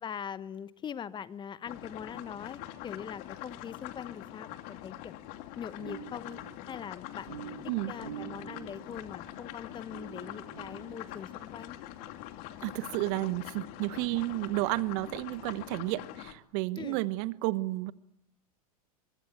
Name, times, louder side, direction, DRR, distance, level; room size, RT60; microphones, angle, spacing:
voice 1, 0.0-5.1 5.6-6.4 6.7-7.5 7.9-11.8 16.8-17.0, left 8 dB, 25° left, 17 dB, 0.9 m, -42 dB
sound 1, 1.6-16.3, left 13 dB, 50° left, 2.4 m, -44 dB
sound 2, 5.8-11.8, right 10 dB, 75° right, 2.3 m, -48 dB
voice 2, 12.6-17.9, right 19 dB, 50° right, 16 dB, 1.2 m, -32 dB
24.0 x 23.0 x 9.3 m, 0.79 s
hypercardioid pair, 90°, 19 cm